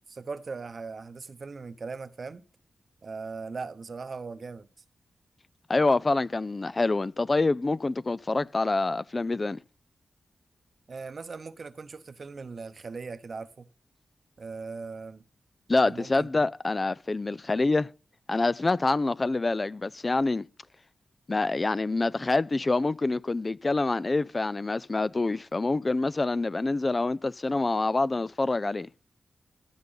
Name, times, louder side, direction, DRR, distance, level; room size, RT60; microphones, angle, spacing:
voice 1, 0.1-2.4 3.0-4.7 10.9-13.7 14.4-15.2 15.8-16.3, right 4 dB, 60° right, 0.8 m, -39 dB
voice 2, 5.7-9.6 15.7-17.9 18.3-20.4 21.3-28.9, left 3 dB, 40° left, 0.4 m, -26 dB
14.5 x 5.3 x 3.9 m
supercardioid pair, 40°, 0 cm